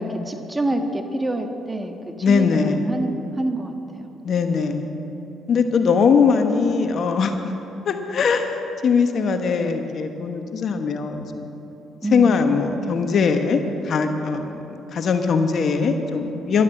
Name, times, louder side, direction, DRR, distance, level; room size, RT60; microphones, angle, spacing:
voice 1, 0.0-4.1 12.0-12.5, right 1 dB, 20° right, 5 dB, 1.6 m, -27 dB
voice 2, 2.2-2.8 4.2-4.9 5.5-7.3 7.8-11.5 12.1-16.6, left 5 dB, 60° left, 6 dB, 1.2 m, -21 dB
12.0 x 12.0 x 7.7 m, 3.0 s
supercardioid pair, 55°, 0 cm